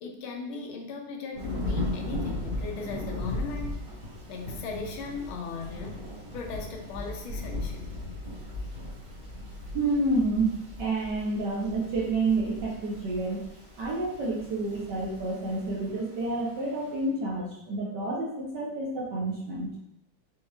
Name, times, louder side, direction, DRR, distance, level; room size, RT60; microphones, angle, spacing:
voice 1, 0.0-3.8 4.3-6.1 6.3-7.9, left 4 dB, 80° left, 2 dB, 1.4 m, -38 dB
Thunder / Rain, 1.3-16.9, left 1 dB, 40° right, 0.8 m, -37 dB
voice 2, 9.7-13.4 13.8-19.7, right 2 dB, 65° right, -3 dB, 1.1 m, -29 dB
5.4 x 3.1 x 2.3 m, 0.78 s
omnidirectional pair, 2.4 m